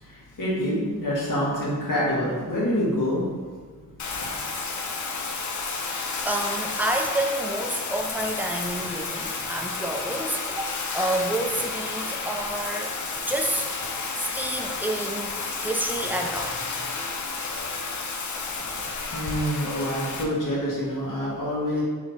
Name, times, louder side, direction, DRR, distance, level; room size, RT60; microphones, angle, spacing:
voice 1, 0.0-3.3 4.2-4.3 19.1-21.8, equal, 80° left, -6 dB, 1.4 m, -26 dB
Bathtub (filling or washing), 4.0-20.2, left 4 dB, 65° left, 0.5 m, -31 dB
voice 2, 6.2-12.9 13.2-13.7 14.2-16.7, right 1 dB, 5° right, 2 dB, 0.4 m, -29 dB
3.5 x 3.1 x 3.9 m, 1.5 s
wide cardioid pair, 110°, 32 cm